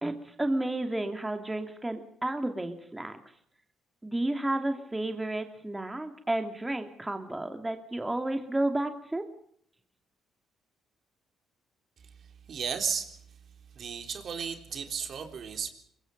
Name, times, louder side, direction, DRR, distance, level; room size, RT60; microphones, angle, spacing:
voice 1, 0.0-3.2 4.0-9.2, right 1 dB, 15° right, 6 dB, 2.6 m, -32 dB
voice 2, 12.0-13.4 13.7-15.7, right 7 dB, 60° right, 6 dB, 3.6 m, -35 dB
24.5 x 21.5 x 5.4 m, 0.67 s
cardioid pair, 90°, 0 cm